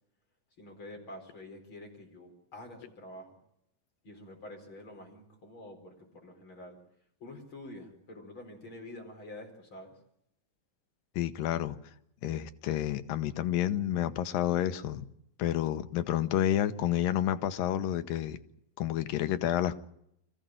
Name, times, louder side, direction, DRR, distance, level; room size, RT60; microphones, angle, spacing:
voice 1, 0.6-3.4 4.0-6.8 7.2-9.9, left 1 dB, 35° left, 5.0 m, -47 dB
voice 2, 11.2-11.8 12.2-15.1 15.4-18.4 18.8-19.8, left 11 dB, 80° left, 2.7 m, -30 dB
25.0 x 15.5 x 9.1 m
omnidirectional pair, 4.0 m